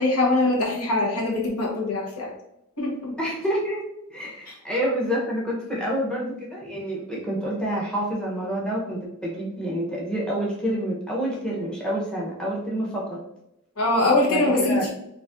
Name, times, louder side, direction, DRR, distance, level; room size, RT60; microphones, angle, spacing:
voice 1, 0.0-2.3 2.8-3.1 4.5-4.6 13.8-14.9, left 2 dB, 75° left, -2 dB, 1.0 m, -22 dB
voice 2, 3.2-3.8 4.1-13.2 14.2-14.8, equal, 5° left, -5 dB, 0.7 m, -28 dB
3.9 x 2.5 x 2.4 m, 0.84 s
head